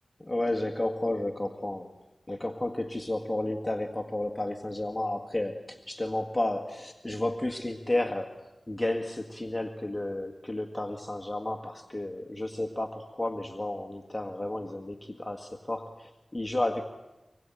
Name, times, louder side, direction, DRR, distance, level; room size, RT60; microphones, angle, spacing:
voice 1, 0.2-1.9 2.3-16.8, left 1 dB, 20° left, 3 dB, 1.9 m, -32 dB
26.0 x 21.0 x 9.2 m, 1.0 s
cardioid pair, 50°, 0 cm